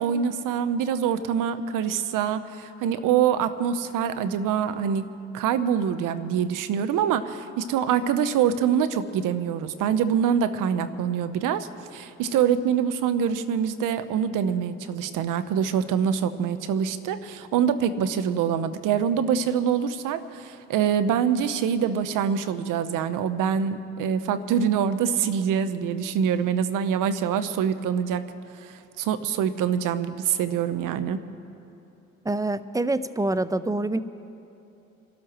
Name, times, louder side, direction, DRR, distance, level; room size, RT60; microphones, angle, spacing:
voice 1, 0.0-28.2 28.5-31.2, right 8 dB, 70° right, 12 dB, 0.8 m, -25 dB
voice 2, 32.2-34.0, right 2 dB, 10° right, 14 dB, 0.6 m, -26 dB
28.0 x 12.5 x 3.0 m, 2.8 s
hypercardioid pair, 55°, 33 cm